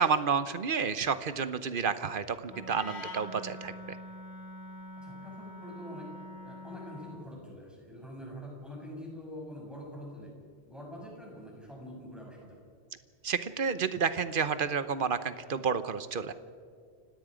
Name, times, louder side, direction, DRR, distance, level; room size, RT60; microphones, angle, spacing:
voice 1, 0.0-4.0 13.2-16.3, right 6 dB, 55° right, 13 dB, 1.0 m, -30 dB
Wind instrument woodwind instrument, 2.5-7.3, left 1 dB, 80° left, 2.0 m, -44 dB
voice 2, 5.0-6.1 6.4-10.3 10.6-12.6, equal, ahead, -3 dB, 6.8 m, -45 dB
29.5 x 17.5 x 5.1 m, 2.1 s
omnidirectional pair, 1.1 m